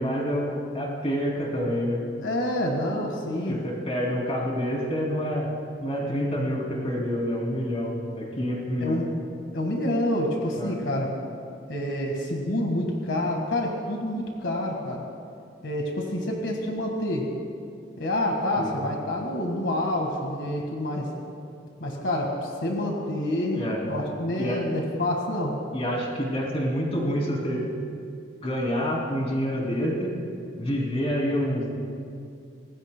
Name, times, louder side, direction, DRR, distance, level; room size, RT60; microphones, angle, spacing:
voice 1, 0.0-2.0 3.5-5.5 5.8-9.0 10.6-10.7 18.6-18.7 23.5-23.8 24.4-24.6 25.7-27.7 28.4-30.2 30.6-31.8, equal, 30° left, -1 dB, 2.8 m, -27 dB
voice 2, 2.2-3.6 8.8-9.0 9.5-11.1 11.7-15.0 15.6-17.3 18.0-21.1 21.8-25.6, left 1 dB, 70° left, 0 dB, 1.7 m, -27 dB
25.0 x 19.0 x 2.2 m, 2.4 s
head